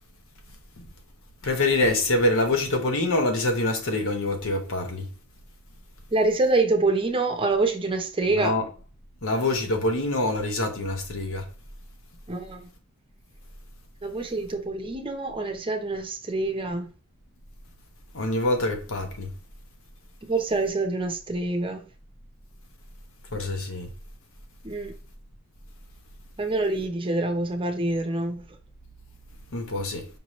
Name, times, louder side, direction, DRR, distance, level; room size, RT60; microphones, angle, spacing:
voice 1, 1.4-5.1 8.3-8.7 9.2-11.5 18.1-19.3 23.3-23.9 29.5-30.1, left 2 dB, 65° left, 1.0 m, -25 dB
voice 2, 6.1-8.5 12.3-12.7 14.0-16.9 20.2-21.8 24.6-24.9 26.4-28.4, right 2 dB, 25° right, 0.7 m, -26 dB
5.3 x 2.9 x 3.1 m
head